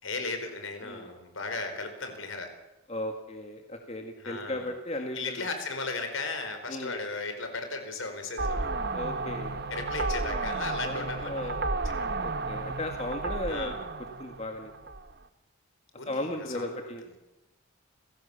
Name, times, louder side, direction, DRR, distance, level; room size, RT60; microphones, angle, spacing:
voice 1, 0.0-2.5 4.2-4.7 5.1-8.7 9.7-11.6 11.9-12.3 13.5-13.8 16.0-16.2 16.5-16.7, left 3 dB, 70° left, 7 dB, 4.6 m, -36 dB
voice 2, 2.9-5.5 6.7-6.9 8.9-9.7 10.8-11.7 12.2-13.8 14.2-14.7 16.1-17.0, left 1 dB, 30° left, 4 dB, 1.9 m, -36 dB
sound 1, 8.4-15.1, right 3 dB, 50° right, 1.2 m, -32 dB
29.0 x 17.0 x 7.1 m, 0.97 s
head